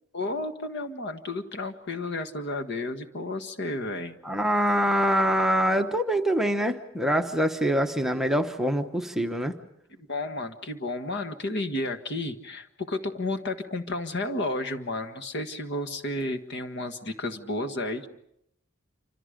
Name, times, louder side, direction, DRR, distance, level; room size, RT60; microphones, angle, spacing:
voice 1, 0.1-4.2 9.9-18.1, left 2 dB, 55° left, 7 dB, 1.6 m, -32 dB
voice 2, 4.2-9.5, equal, ahead, 4 dB, 1.0 m, -24 dB
28.0 x 26.0 x 5.2 m, 0.75 s
head